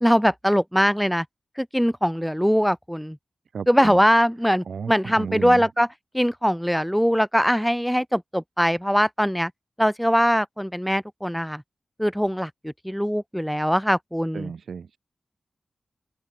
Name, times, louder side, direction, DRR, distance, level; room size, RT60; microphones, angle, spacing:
voice 1, 0.0-1.2 1.6-3.2 3.7-5.9 6.1-9.5 9.8-11.6 12.0-12.5 12.9-14.5, equal, ahead, 0.3 m, -21 dB
voice 2, 3.5-4.0 4.7-5.6 14.3-15.0, right 6 dB, 85° right, 1.5 m, -33 dB
open air
wide cardioid pair, 120°, 0 cm